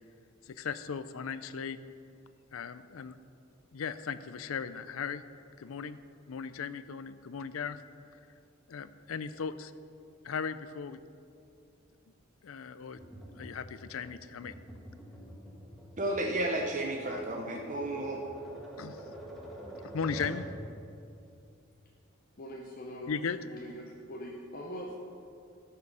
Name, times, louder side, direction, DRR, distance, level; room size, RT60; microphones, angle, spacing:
voice 1, 0.5-1.8 2.5-3.1 3.7-5.2 5.6-6.0 6.3-7.8 8.7-9.7 10.2-11.0 12.4-13.0 13.4-14.5 18.8-19.0 19.9-20.5 23.1-23.4, left 6 dB, 80° left, 14 dB, 0.5 m, -37 dB
Tap, 13.0-20.5, equal, ahead, 1.5 m, -47 dB
voice 2, 16.0-18.2, right 1 dB, 35° right, 1 dB, 0.7 m, -32 dB
voice 3, 22.4-23.1 23.4-25.0, equal, 45° left, -1 dB, 0.9 m, -42 dB
13.5 x 6.8 x 5.5 m, 2.5 s
head